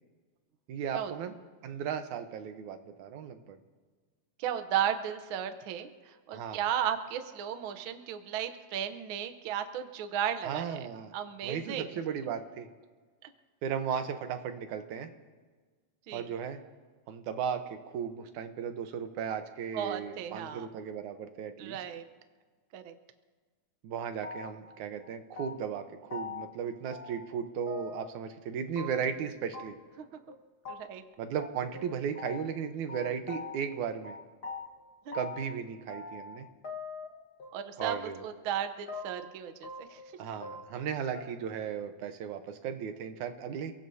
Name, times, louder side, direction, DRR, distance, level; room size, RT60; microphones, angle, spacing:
voice 1, 0.7-1.4 1.6-3.6 6.3-6.6 10.4-11.1 11.4-12.7 13.6-15.1 16.1-16.6 17.1-21.8 23.8-29.8 31.2-34.2 35.1-36.5 37.8-38.2 40.2-43.7, right 7 dB, 85° right, 7 dB, 2.4 m, -36 dB
voice 2, 4.4-10.8 11.1-11.9 16.1-16.3 19.7-20.7 21.6-22.0 22.7-22.9 30.0-30.1 30.7-31.0 35.1-35.2 37.5-40.0, right 9 dB, 65° right, 8 dB, 1.3 m, -35 dB
sound 1, 24.2-24.7 25.0-25.8 26.1-26.5 26.9-27.4 27.7-28.2 28.8-29.2 29.5-29.6 29.9-30.0 30.3-30.4 30.6-30.8 31.0-31.1 31.4-32.6 32.9-33.8 34.0-35.5 35.9-36.4 36.6-37.5 37.8-38.3 38.5-39.3 39.6-40.2 40.4-40.9 41.1-41.2, left 4 dB, 40° left, 1.5 m, -42 dB
29.5 x 17.5 x 2.8 m, 1.5 s
omnidirectional pair, 3.3 m